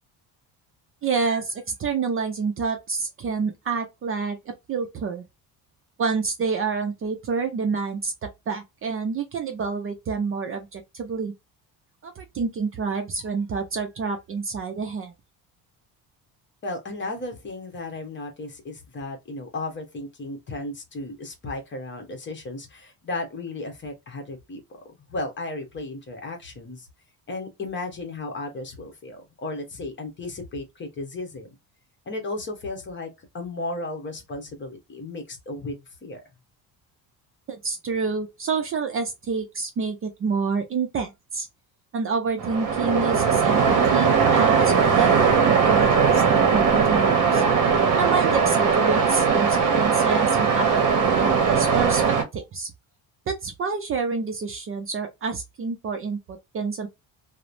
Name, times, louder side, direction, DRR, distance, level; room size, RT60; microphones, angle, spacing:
voice 1, 1.0-4.4 4.7-5.2 6.0-11.3 12.0-15.1 37.5-41.5 41.9-47.4 47.9-52.0 52.3-52.7 53.3-56.9, right 5 dB, 35° right, 0.5 m, -28 dB
voice 2, 16.6-24.6 25.1-26.9 27.3-31.5 32.1-33.1 33.3-36.2, left 2 dB, 30° left, 1.0 m, -34 dB
Waves surf, 42.4-52.2, right 6 dB, 50° right, 0.8 m, -19 dB
3.0 x 2.1 x 2.5 m
cardioid pair, 140°, 38 cm